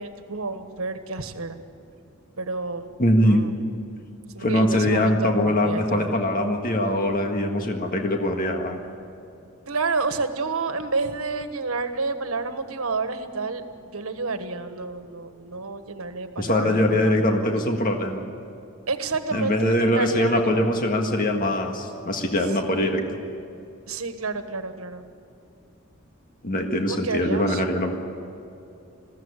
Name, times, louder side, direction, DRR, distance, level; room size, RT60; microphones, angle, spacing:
voice 1, 0.0-1.6 2.4-2.9 3.2-3.5 4.3-6.1 9.7-13.6 13.9-17.5 18.9-20.7 22.7-23.0 23.9-25.0 26.9-27.6, right 4 dB, 85° right, 9 dB, 1.4 m, -30 dB
voice 2, 3.0-3.4 4.4-8.8 16.4-18.2 19.3-23.0 26.4-27.9, left 1 dB, 45° left, 3 dB, 1.7 m, -22 dB
21.0 x 15.5 x 9.9 m, 2.6 s
head